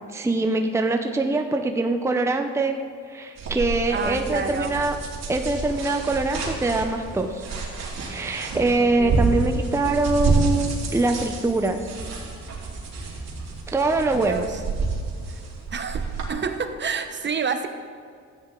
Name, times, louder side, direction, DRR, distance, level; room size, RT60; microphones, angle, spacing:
voice 1, 0.1-2.8 3.1-5.0 5.3-7.4 8.1-11.9 13.7-14.5, right 2 dB, 10° right, 4 dB, 0.7 m, -23 dB
sound 1, 3.4-16.3, right 3 dB, 60° right, 2.7 m, -29 dB
voice 2, 3.9-4.7 9.0-9.3 14.1-14.6 15.3-15.4 15.7-17.7, right 6 dB, 35° right, 7 dB, 0.9 m, -29 dB
13.5 x 9.5 x 3.8 m, 2.2 s
cardioid pair, 90°, 30 cm